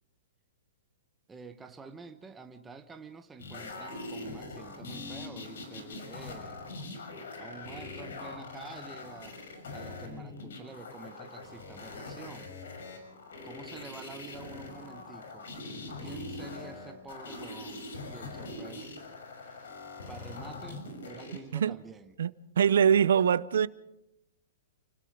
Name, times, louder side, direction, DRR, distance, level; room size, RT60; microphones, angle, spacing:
voice 1, 1.3-6.6 7.4-9.4 9.7-12.5 13.4-15.5 16.0-19.0 19.4-22.2, right 4 dB, 5° right, 1.0 m, -48 dB
sound 1, 3.4-21.4 22.7-22.8, left 2 dB, 70° left, 6.2 m, -42 dB
voice 2, 22.6-23.7, right 8 dB, 70° right, 0.7 m, -23 dB
29.5 x 19.0 x 4.8 m
hypercardioid pair, 175°, 0 cm